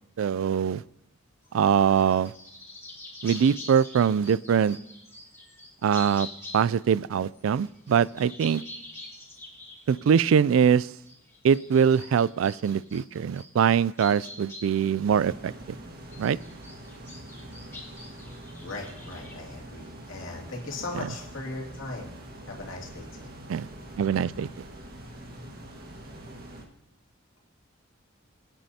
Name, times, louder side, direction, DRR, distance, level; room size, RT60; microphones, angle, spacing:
voice 1, 0.2-0.8 1.5-2.3 3.2-4.8 5.8-6.3 6.5-8.6 9.9-10.9 11.4-15.8 16.2-16.4 23.5-23.7 24.0-24.5, right 7 dB, 80° right, 20 dB, 0.3 m, -23 dB
sound 1, 1.4-6.9 7.3-15.7 16.0-19.5, left 2 dB, 15° left, 1.8 m, -45 dB
sound 2, 15.1-26.6, right 1 dB, 50° right, 1.7 m, -44 dB
voice 2, 18.6-22.1 22.4-23.3, left 2 dB, 75° left, -1 dB, 2.5 m, -38 dB
21.0 x 9.1 x 2.8 m, 0.91 s
head